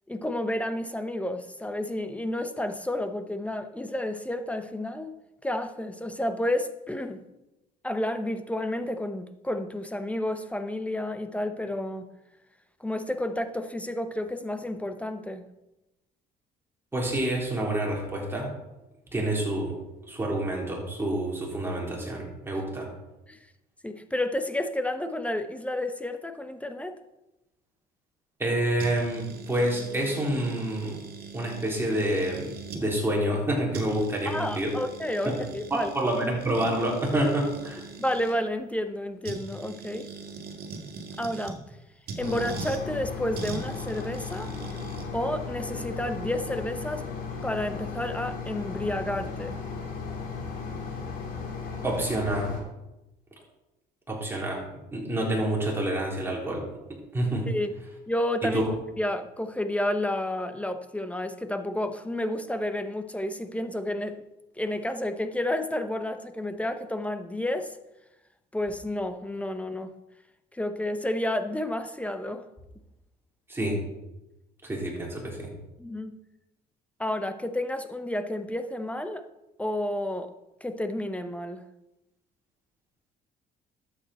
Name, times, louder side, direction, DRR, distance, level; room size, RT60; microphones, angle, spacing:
voice 1, 0.1-5.2 5.4-7.2 7.8-12.1 12.8-15.4 23.3-23.4 23.8-27.0 34.2-35.9 38.0-40.1 41.2-41.6 42.2-44.5 45.1-47.0 47.4-49.6 57.5-57.7 58.1-58.6 59.0-64.2 64.6-67.8 68.5-69.9 70.5-72.4 75.8-76.2 77.0-79.3 79.6-80.3 80.6-81.6, left 1 dB, 10° left, 0.8 m, -31 dB
voice 2, 16.9-18.5 19.1-19.7 20.1-22.9 28.4-31.0 31.3-32.5 32.8-34.8 35.3-35.4 35.7-37.8 51.8-52.5 54.1-54.6 54.9-56.6 56.9-57.5 58.4-58.7 73.5-73.8 74.6-75.5, right 1 dB, 15° right, 3.7 m, -28 dB
sound 1, 28.8-32.9 33.4-33.5 33.7-38.3 39.2-41.6 42.1-42.8 43.3-45.0, right 4 dB, 65° right, 2.0 m, -41 dB
sound 2, 42.2-52.6, left 5 dB, 60° left, 3.1 m, -36 dB
12.0 x 7.9 x 4.3 m
cardioid pair, 110°, 17 cm